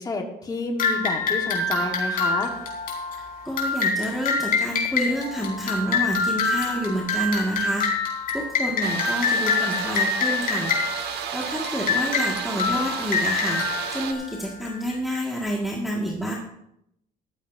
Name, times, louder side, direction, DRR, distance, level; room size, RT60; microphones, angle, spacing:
voice 1, 0.0-2.5, left 3 dB, 20° left, 2 dB, 1.6 m, -29 dB
sound 1, 0.8-14.9, left 4 dB, 55° left, 3.9 m, -26 dB
voice 2, 3.4-7.9 8.3-10.7 11.3-13.6 13.9-16.3, equal, ahead, -3 dB, 1.9 m, -28 dB
sound 2, 8.8-14.1, right 8 dB, 75° right, 1.4 m, -32 dB
14.0 x 13.5 x 2.7 m, 0.78 s
cardioid pair, 110°, 17 cm